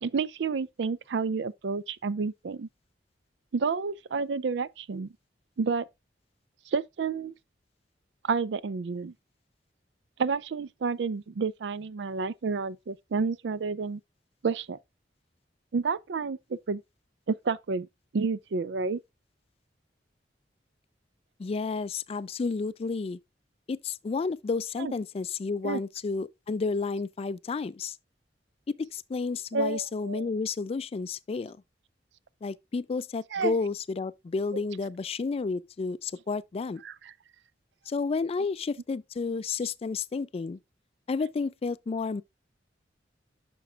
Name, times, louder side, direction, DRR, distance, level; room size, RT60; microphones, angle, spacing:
voice 1, 0.0-2.7 3.5-5.1 5.6-5.8 6.7-7.3 8.2-9.1 10.2-14.0 14.4-14.8 15.7-16.8 17.3-17.9 18.1-19.0 24.8-24.9 25.6-25.8 29.5-30.3 33.3-33.5 36.8-36.9, right 4 dB, 70° right, 0.4 m, -30 dB
voice 2, 21.4-23.2 23.7-28.0 28.7-31.6 32.4-36.8 37.9-40.6 41.1-42.2, left 4 dB, 35° left, 0.3 m, -31 dB
10.0 x 6.0 x 2.4 m
head